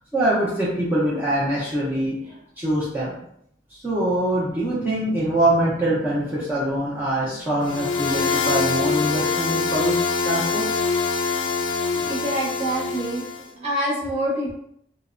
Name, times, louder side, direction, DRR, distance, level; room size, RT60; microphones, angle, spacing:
voice 1, 0.1-3.2 3.7-10.0 10.2-10.7, right 1 dB, 10° right, -10 dB, 0.5 m, -24 dB
sound 1, 7.6-13.4, left 4 dB, 90° left, 0.4 m, -24 dB
voice 2, 11.9-13.3 13.5-14.5, right 1 dB, 35° right, -6 dB, 0.9 m, -26 dB
2.8 x 2.0 x 2.5 m, 0.73 s
head